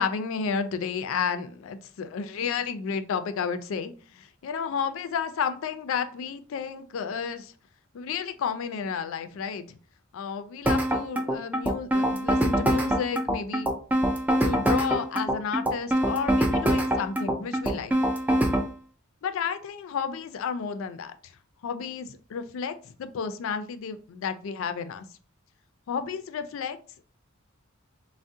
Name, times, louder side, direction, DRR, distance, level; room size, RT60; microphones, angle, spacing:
voice 1, 0.0-7.5 7.9-9.8 10.1-13.7 14.4-17.9 19.2-21.4 21.6-25.1 25.9-26.8, left 6 dB, 65° left, 10 dB, 0.3 m, -32 dB
sound 1, 10.7-18.7, right 1 dB, 10° right, 0.4 m, -24 dB
3.5 x 2.0 x 2.6 m, 0.40 s
head